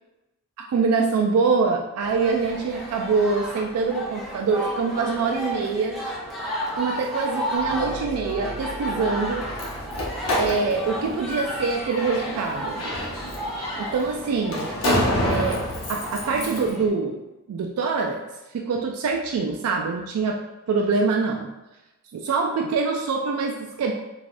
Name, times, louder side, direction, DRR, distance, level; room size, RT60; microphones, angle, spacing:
voice 1, 0.6-6.0 6.8-9.5 10.4-12.8 13.8-14.7 15.2-15.6 15.9-17.2 17.5-18.2 18.5-21.5 22.1-23.9, right 4 dB, 85° right, 3 dB, 0.3 m, -24 dB
sound 1, 2.0-16.9, equal, ahead, 0.5 m, -33 dB
sound 2, 7.5-11.3, right 1 dB, 35° left, 0.9 m, -40 dB
Slam, 9.2-16.7, left 1 dB, 80° left, 0.8 m, -28 dB
3.4 x 2.4 x 2.4 m, 1.0 s
head